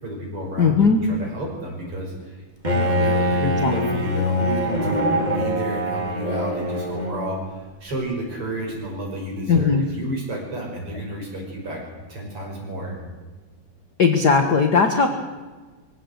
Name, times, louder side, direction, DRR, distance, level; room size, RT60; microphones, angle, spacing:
voice 1, 0.0-11.8 12.1-13.0, right 1 dB, 40° right, 0 dB, 6.4 m, -31 dB
voice 2, 0.6-1.0 3.6-4.0 9.5-9.9 14.0-15.1, left 5 dB, 50° left, 5 dB, 1.2 m, -18 dB
Bowed string instrument, 2.6-7.4, equal, 15° right, 2.4 m, -23 dB
23.0 x 16.5 x 8.1 m, 1.3 s
omnidirectional pair, 4.0 m